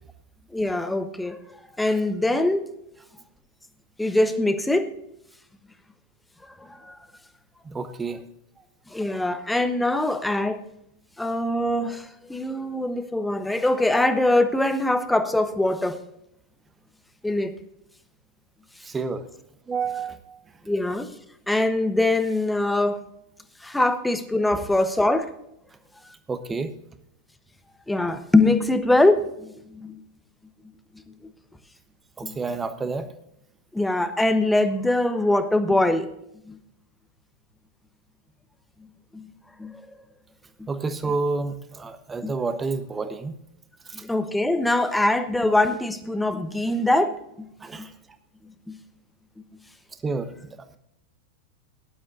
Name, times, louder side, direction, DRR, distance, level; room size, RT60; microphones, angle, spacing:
voice 1, 0.5-1.4 1.8-2.7 4.0-4.9 6.6-7.0 8.9-10.6 11.2-16.0 17.2-17.5 20.7-21.1 21.5-23.0 23.6-25.3 27.9-30.0 32.2-32.4 33.7-36.1 36.5-36.6 39.1-39.3 39.6-39.8 40.6-40.7 42.2-42.3 43.9-47.5 47.7-47.9 48.7-48.8, left 2 dB, 5° left, 9 dB, 1.2 m, -23 dB
voice 2, 7.6-8.2 18.8-19.3 19.7-20.4 26.3-26.7 32.2-33.1 40.7-43.3 47.6-47.9 50.0-50.6, right 4 dB, 15° right, 10 dB, 1.2 m, -29 dB
18.0 x 11.5 x 2.7 m, 0.78 s
figure-of-eight pair, 90°, 0 cm